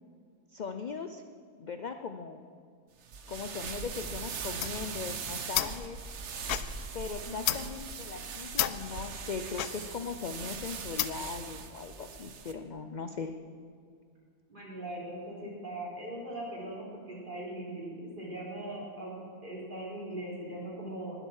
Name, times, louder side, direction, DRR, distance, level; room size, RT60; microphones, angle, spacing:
voice 1, 0.5-1.2 1.6-2.4 3.3-6.0 6.9-13.3, left 5 dB, 55° left, 8 dB, 0.5 m, -39 dB
sound 1, 3.0-12.5, right 5 dB, 55° right, 1.2 m, -40 dB
sound 2, 4.4-11.4, left 13 dB, 90° left, 1.1 m, -35 dB
voice 2, 7.2-7.7 14.5-19.2 19.4-21.2, right 1 dB, 35° right, -5 dB, 4.4 m, -40 dB
20.5 x 8.0 x 6.4 m, 2.2 s
omnidirectional pair, 1.6 m